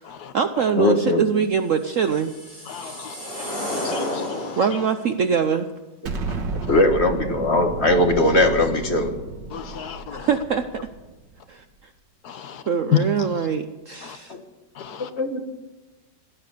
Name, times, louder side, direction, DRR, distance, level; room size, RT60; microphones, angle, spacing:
voice 1, 0.0-3.0 4.6-5.7 10.1-10.7 11.5-11.6 12.7-14.3, right 6 dB, 55° right, 0.9 m, -24 dB
voice 2, 0.8-1.2 6.7-9.2 14.3-14.4 15.0-15.4, left 2 dB, 40° left, 1.5 m, -20 dB
sound 1, 1.8-5.0, left 1 dB, 80° left, 7.7 m, -31 dB
voice 3, 2.7-3.1 3.4-4.8 6.7-6.8 9.5-10.3 12.2-12.6 12.9-13.5 14.0-14.2 14.7-15.1, left 8 dB, 65° left, 1.5 m, -30 dB
Explosion, 6.1-11.2, right 3 dB, 90° right, 2.1 m, -32 dB
17.0 x 12.0 x 6.8 m
omnidirectional pair, 1.9 m